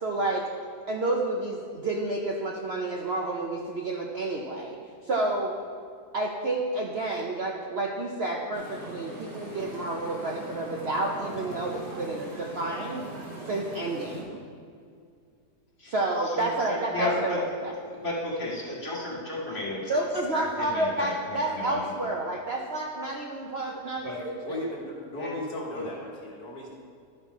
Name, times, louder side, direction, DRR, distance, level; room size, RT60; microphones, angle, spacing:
voice 1, 0.0-0.4 0.9-4.8 5.0-5.5 6.1-13.0 13.5-14.4 15.9-17.7 18.9-19.0 19.9-24.6, right 2 dB, 55° right, 0 dB, 0.7 m, -30 dB
sound 1, 8.5-14.2, right 2 dB, 75° right, 2.7 m, -40 dB
voice 2, 16.9-17.4 17.9-19.8 20.6-21.9 24.0-24.2 25.2-25.3 25.7-25.8, left 1 dB, 45° left, -7 dB, 2.5 m, -33 dB
voice 3, 24.4-26.7, left 1 dB, 70° left, -2 dB, 1.8 m, -36 dB
11.5 x 5.6 x 4.7 m, 2.3 s
omnidirectional pair, 1.7 m